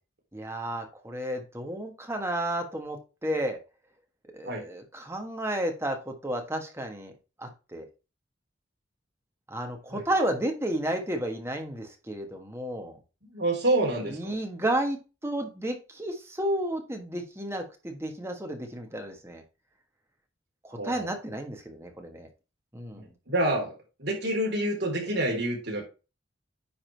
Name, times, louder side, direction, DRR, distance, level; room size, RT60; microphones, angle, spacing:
voice 1, 0.3-3.6 4.3-7.1 7.4-7.9 9.5-13.0 14.0-15.0 15.2-19.4 20.6-22.3 22.7-23.0, right 1 dB, 15° right, 4 dB, 1.4 m, -32 dB
voice 2, 13.3-14.2 20.7-21.1 22.9-23.7 24.0-25.8, right 1 dB, 60° right, -1 dB, 3.4 m, -27 dB
9.7 x 3.7 x 4.5 m, 0.30 s
head